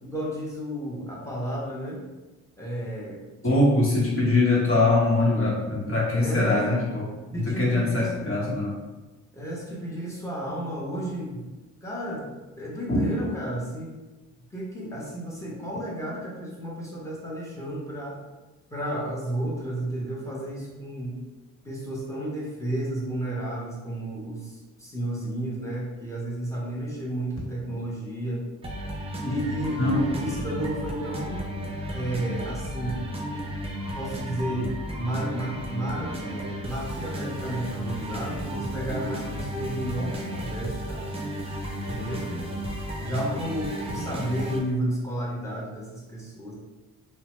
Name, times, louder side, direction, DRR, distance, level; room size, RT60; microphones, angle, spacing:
voice 1, 0.0-2.0 2.6-3.8 6.1-6.7 7.3-8.1 9.3-11.5 11.8-13.9 14.5-18.2 18.7-21.2 21.6-28.5 29.2-31.4 31.9-33.0 33.9-41.1 41.7-42.3 43.0-46.5, right 1 dB, 10° left, -5 dB, 0.9 m, -32 dB
voice 2, 3.4-8.8 12.9-13.2 29.8-30.0, left 2 dB, 45° left, -5 dB, 1.1 m, -23 dB
sound 1, 28.6-44.6, equal, 20° right, 0.5 m, -33 dB
2.7 x 2.1 x 3.0 m, 1.1 s
cardioid pair, 90°, 30 cm